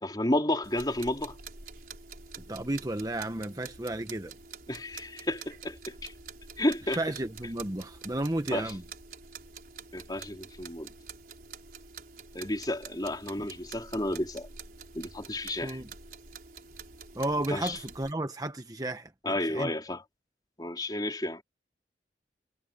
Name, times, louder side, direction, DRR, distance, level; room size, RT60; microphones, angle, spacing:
voice 1, 0.0-1.4 4.7-6.1 6.6-7.0 8.5-8.7 9.9-10.9 12.3-14.5 14.9-15.8 17.5-17.8 19.2-20.0 20.6-21.4, left 1 dB, 25° left, 3.6 m, -31 dB
sound 1, 0.6-18.1, right 5 dB, 55° right, 5.0 m, -47 dB
voice 2, 2.5-4.3 6.9-8.8 15.6-15.9 17.1-19.7, right 1 dB, 20° right, 1.0 m, -33 dB
head